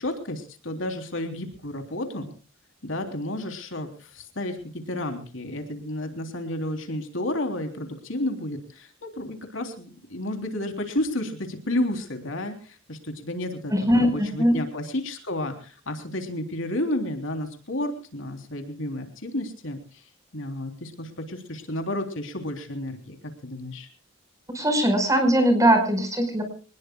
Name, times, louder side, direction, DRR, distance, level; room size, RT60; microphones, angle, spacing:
voice 1, 0.0-2.3 2.8-20.0 20.3-23.2 23.4-23.9, left 1 dB, 60° left, 5 dB, 3.5 m, -31 dB
voice 2, 13.7-14.6 24.5-26.4, equal, 15° right, 6 dB, 5.1 m, -20 dB
26.0 x 20.0 x 2.3 m, 0.38 s
head